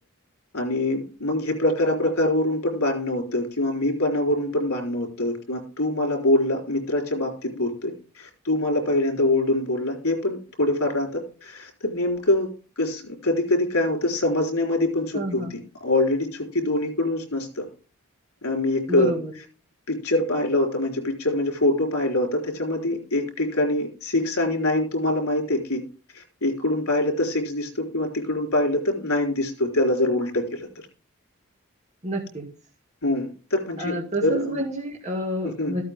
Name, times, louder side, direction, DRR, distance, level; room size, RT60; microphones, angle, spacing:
voice 1, 0.5-12.5 12.8-17.7 18.4-19.1 19.9-25.8 26.1-30.7 33.0-33.9 34.2-34.6 35.4-35.7, left 1 dB, 80° left, 2 dB, 4.1 m, -24 dB
voice 2, 15.1-15.5 18.9-19.3 32.0-32.4 33.8-35.8, equal, 30° right, -1 dB, 2.0 m, -29 dB
14.0 x 8.7 x 3.6 m, 0.38 s
head